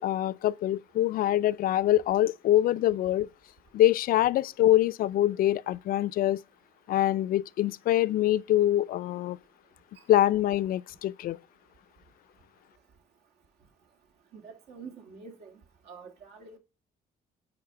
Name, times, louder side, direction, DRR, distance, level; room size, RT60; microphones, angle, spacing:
voice 1, 0.0-3.3 3.7-6.4 6.9-9.4 10.1-11.4, left 13 dB, 60° left, 0.4 m, -24 dB
voice 2, 14.3-15.5 15.9-16.6, right 5 dB, 75° right, 2.0 m, -46 dB
8.7 x 4.4 x 4.5 m
cardioid pair, 110°, 17 cm